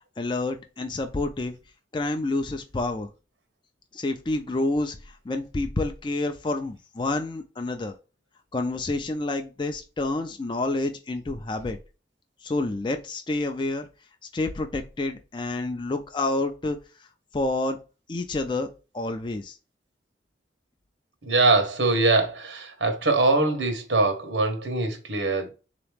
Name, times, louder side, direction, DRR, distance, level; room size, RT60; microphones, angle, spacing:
voice 1, 0.2-1.5 1.9-3.1 3.9-7.9 8.5-11.8 12.4-13.9 14.3-17.1 17.3-17.8 18.1-18.7 18.9-19.6, left 2 dB, 25° left, 0.4 m, -28 dB
voice 2, 21.2-25.5, right 2 dB, 90° right, 1.3 m, -23 dB
4.0 x 2.9 x 3.3 m
head